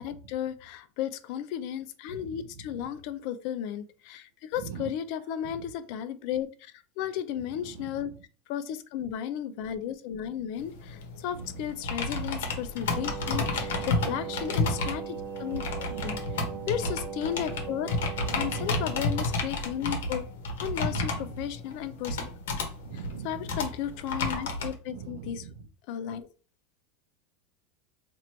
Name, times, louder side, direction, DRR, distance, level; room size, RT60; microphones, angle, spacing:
voice 1, 0.0-8.1 8.5-16.2 16.7-20.2 20.6-22.2 22.9-25.5 25.9-26.3, left 10 dB, 60° left, 12 dB, 0.5 m, -34 dB
voice 2, 2.1-2.4 4.6-4.9 5.4-5.6 7.6-7.9 11.3-11.5 13.4-14.2 15.9-16.7 18.2-18.9 20.8-21.5 22.8-23.5 24.9-25.7, right 7 dB, 75° right, 10 dB, 0.6 m, -42 dB
sound 1, 10.6-24.7, left 3 dB, 85° left, 1.0 m, -32 dB
Wind instrument woodwind instrument, 12.9-19.5, right 7 dB, 20° right, 0.8 m, -39 dB
2.9 x 2.6 x 4.4 m, 0.37 s
supercardioid pair, 125°, 0 cm